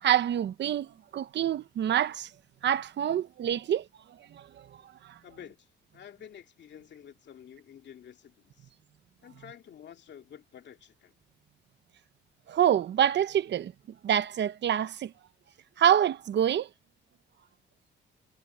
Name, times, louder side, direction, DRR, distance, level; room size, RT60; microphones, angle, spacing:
voice 1, 0.0-2.3 2.6-3.9 4.3-4.7 12.5-13.7 14.0-15.1 15.8-16.7, right 10 dB, 60° right, 1.1 m, -26 dB
voice 2, 5.2-5.7 5.9-8.7 9.2-11.1, left 9 dB, 65° left, 2.5 m, -50 dB
cardioid pair, 90°, 20 cm